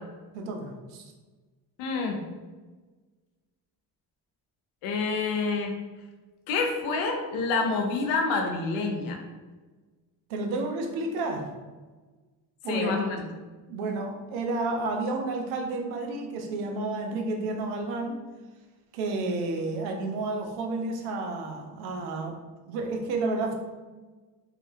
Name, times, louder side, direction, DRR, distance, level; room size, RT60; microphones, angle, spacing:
voice 1, 0.3-1.1 10.3-11.5 12.6-12.9 13.7-18.2 18.9-22.4 22.7-23.5, right 2 dB, 85° right, 3 dB, 0.6 m, -31 dB
voice 2, 1.8-2.2 4.8-5.7 6.5-9.2 12.7-13.2, left 4 dB, 80° left, 3 dB, 0.6 m, -27 dB
2.8 x 2.4 x 2.6 m, 1.3 s
hypercardioid pair, 50°, 48 cm